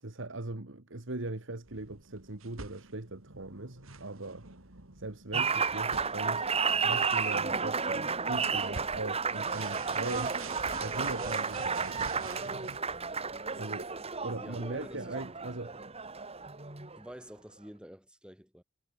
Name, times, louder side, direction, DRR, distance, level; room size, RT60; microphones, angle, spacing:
voice 1, 0.0-4.5 5.0-6.5 6.8-10.4 10.8-12.3 13.5-13.9 14.2-15.7, right 2 dB, 65° right, 1.8 m, -40 dB
sound 1, 1.6-12.8, right 4 dB, 85° right, 3.6 m, -47 dB
Applause, 5.3-17.1, right 5 dB, 30° right, 2.7 m, -32 dB
voice 2, 14.2-15.8 17.0-18.6, equal, 5° right, 6.7 m, -49 dB
head